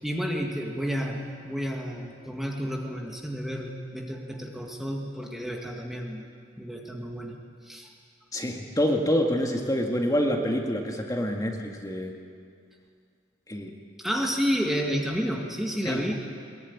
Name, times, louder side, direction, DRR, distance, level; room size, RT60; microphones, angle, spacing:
voice 1, 0.0-6.3 6.6-7.4 7.6-7.9 14.0-16.1, equal, ahead, 0 dB, 1.8 m, -31 dB
voice 2, 8.3-12.1 13.5-13.7 15.9-16.1, equal, 20° left, 1 dB, 1.9 m, -27 dB
21.5 x 20.0 x 9.6 m, 2.3 s
head